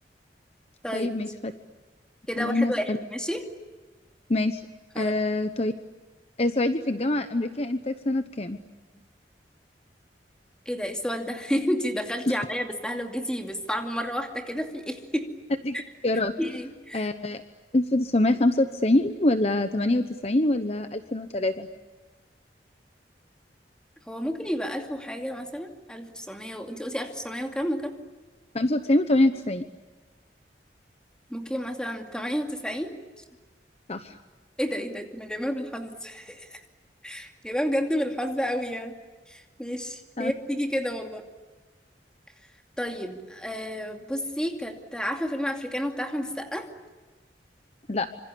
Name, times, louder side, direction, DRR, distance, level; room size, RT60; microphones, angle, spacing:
voice 1, 0.9-1.5 2.4-3.0 4.3-4.6 5.0-5.7 6.4-8.6 12.3-12.4 15.6-15.8 16.0-16.3 16.9-17.4 17.7-21.7 28.5-29.6 33.9-34.2 40.2-40.3 47.9-48.1, left 1 dB, 35° left, 9 dB, 1.0 m, -25 dB
voice 2, 2.3-3.5 4.9-5.1 10.7-15.3 15.7-15.8 16.4-17.1 24.1-28.0 31.3-33.2 34.6-36.6 37.0-39.0 39.3-41.2 42.8-46.7, equal, 5° left, 3 dB, 2.5 m, -31 dB
26.5 x 26.5 x 8.5 m, 1.3 s
head